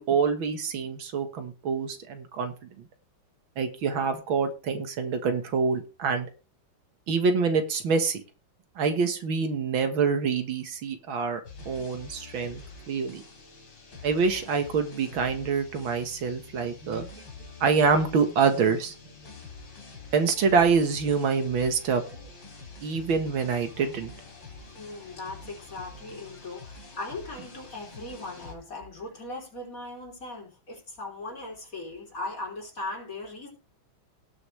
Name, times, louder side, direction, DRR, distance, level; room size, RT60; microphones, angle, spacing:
voice 1, 0.0-2.5 3.6-6.3 7.1-8.2 8.8-13.2 14.0-17.1 17.6-18.9 20.1-22.0 22.8-24.1, right 5 dB, 75° right, 2.1 m, -26 dB
sound 1, 11.4-28.5, left 3 dB, 65° left, 3.7 m, -46 dB
voice 2, 24.7-33.5, left 2 dB, 40° left, 3.9 m, -39 dB
18.5 x 6.5 x 3.3 m
omnidirectional pair, 2.2 m